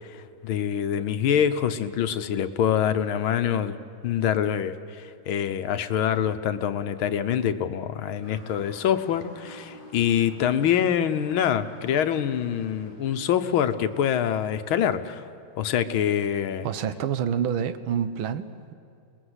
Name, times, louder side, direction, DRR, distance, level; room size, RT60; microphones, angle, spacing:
voice 1, 0.4-3.8 4.0-15.2 15.6-16.7, left 9 dB, 80° left, 10 dB, 1.8 m, -25 dB
Motor vehicle (road) / Siren, 8.2-15.0, equal, 55° right, 7.8 m, -48 dB
voice 2, 16.6-18.7, right 8 dB, 80° right, 11 dB, 1.7 m, -28 dB
28.5 x 20.0 x 8.1 m, 2.4 s
omnidirectional pair, 2.2 m